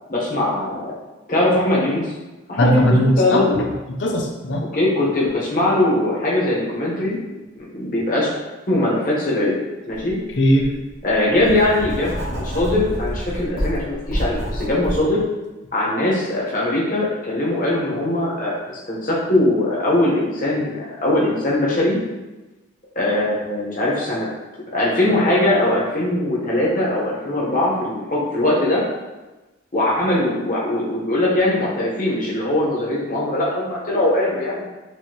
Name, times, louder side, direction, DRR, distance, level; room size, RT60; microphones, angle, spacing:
voice 1, 0.1-0.9 1.3-2.0 2.5-3.6 4.7-7.2 7.7-8.3 8.7-9.6 9.9-10.2 11.0-15.2 15.7-18.6 18.9-22.0 22.9-24.3 24.7-28.8 29.7-34.6, left 1 dB, 45° left, -5 dB, 1.0 m, -21 dB
voice 2, 2.6-4.7 10.4-10.7, equal, 70° left, 2 dB, 0.6 m, -19 dB
Writing, 9.9-10.1 10.6-15.0, equal, 85° right, 1.1 m, -27 dB
4.6 x 2.7 x 2.9 m, 1.1 s
head